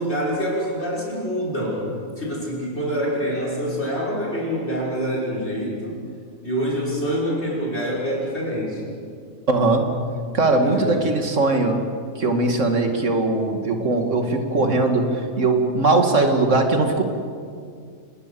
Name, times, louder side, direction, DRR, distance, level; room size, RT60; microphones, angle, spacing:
voice 1, 0.0-1.9 2.2-6.0 6.4-8.8 10.6-11.0, equal, 50° left, -3 dB, 6.1 m, -26 dB
voice 2, 9.5-11.8 12.2-17.0, right 2 dB, 65° right, 4 dB, 2.7 m, -20 dB
27.0 x 20.5 x 7.1 m, 2.2 s
omnidirectional pair, 1.4 m